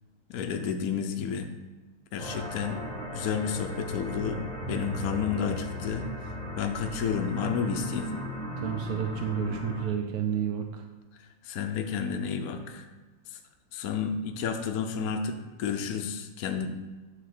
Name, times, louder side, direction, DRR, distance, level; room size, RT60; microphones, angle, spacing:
voice 1, 0.3-1.5 2.1-2.8 3.1-6.0 6.6-8.1 11.5-12.8 13.7-16.7, left 7 dB, 60° left, 5 dB, 0.9 m, -31 dB
sound 1, 2.2-9.8, equal, 30° right, 0.9 m, -36 dB
voice 2, 8.6-10.8, right 8 dB, 65° right, 3 dB, 0.9 m, -30 dB
9.3 x 3.4 x 6.6 m, 1.3 s
omnidirectional pair, 2.4 m